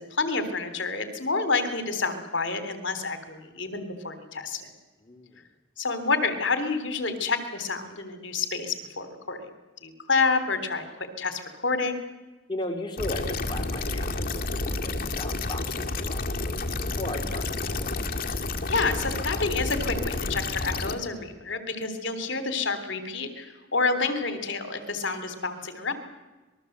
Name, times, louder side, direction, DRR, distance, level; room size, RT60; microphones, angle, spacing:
voice 1, 0.0-4.7 5.8-9.4 9.8-12.1 18.7-25.9, left 4 dB, 60° left, 10 dB, 3.3 m, -28 dB
voice 2, 5.0-5.5 12.5-17.9, left 1 dB, 25° left, 3 dB, 2.5 m, -37 dB
sound 1, 13.0-21.0, left 2 dB, 45° left, 2.0 m, -30 dB
26.5 x 21.0 x 8.0 m, 1.2 s
head